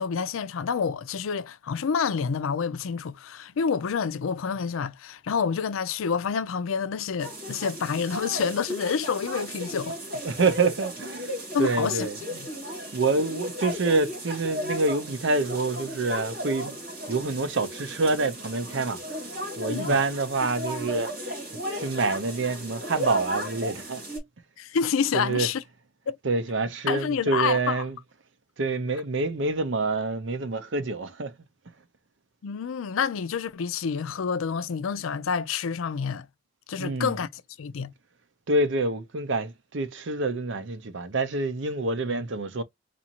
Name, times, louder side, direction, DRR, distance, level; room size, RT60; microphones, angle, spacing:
voice 1, 0.0-10.2 11.5-12.4 19.6-20.0 24.6-25.6 26.1-26.2 26.9-27.8 32.4-36.3 36.7-37.9, left 6 dB, 85° left, 0.4 m, -28 dB
sound 1, 7.2-24.2, equal, 50° right, 2.4 m, -35 dB
voice 2, 10.2-12.2 12.9-16.8 17.1-19.0 19.6-21.1 21.7-24.0 25.1-25.5 26.2-28.0 28.6-31.3 36.8-37.1 38.5-42.6, right 3 dB, 65° right, 0.6 m, -27 dB
4.2 x 2.5 x 2.8 m
head